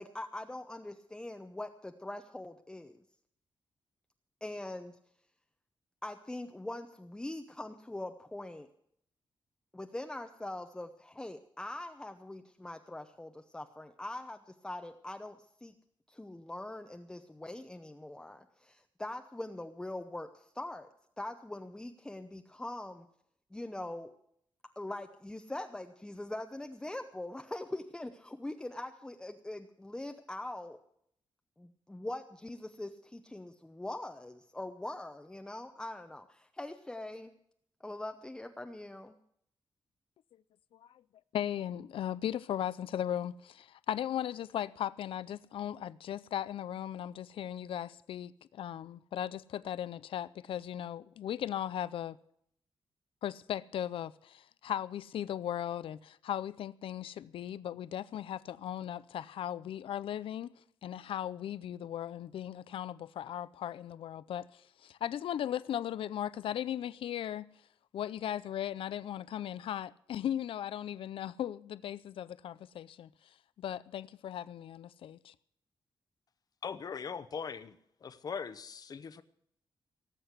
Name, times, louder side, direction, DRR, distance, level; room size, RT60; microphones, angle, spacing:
voice 1, 0.0-3.0 4.4-5.0 6.0-8.7 9.7-15.7 16.1-20.9 21.2-23.1 23.5-24.1 24.8-30.8 31.6-37.3 37.8-39.2, left 1 dB, 10° left, 0.7 m, -42 dB
voice 2, 41.3-52.2 53.2-60.5 60.8-67.5 67.9-73.1 73.6-75.3, left 10 dB, 85° left, 0.5 m, -37 dB
voice 3, 76.6-79.2, left 6 dB, 45° left, 0.9 m, -40 dB
18.0 x 7.8 x 8.1 m
wide cardioid pair, 145°, 9 cm